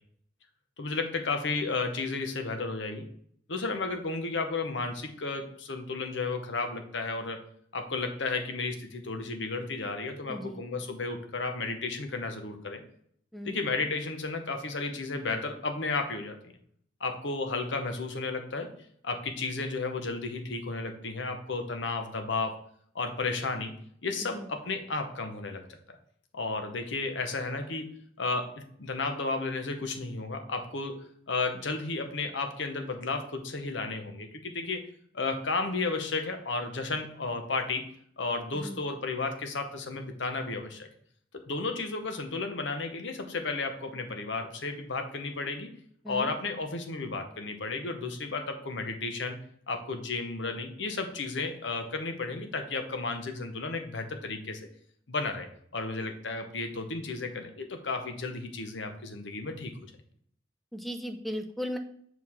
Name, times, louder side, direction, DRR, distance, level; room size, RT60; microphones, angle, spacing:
voice 1, 0.8-3.0 3.5-7.4 7.7-12.8 13.4-16.4 17.0-18.7 19.0-22.6 22.9-23.7 24.0-25.6 26.3-27.9 28.2-34.8 35.1-37.9 38.2-40.9 41.3-45.7 46.1-49.4 49.7-54.6 55.1-59.7, left 3 dB, 75° left, 5 dB, 0.9 m, -33 dB
voice 2, 10.3-10.6 13.3-13.6 24.3-24.5 38.5-38.8 46.0-46.3 60.7-61.8, equal, ahead, 6 dB, 0.5 m, -36 dB
6.0 x 4.7 x 3.6 m, 0.64 s
head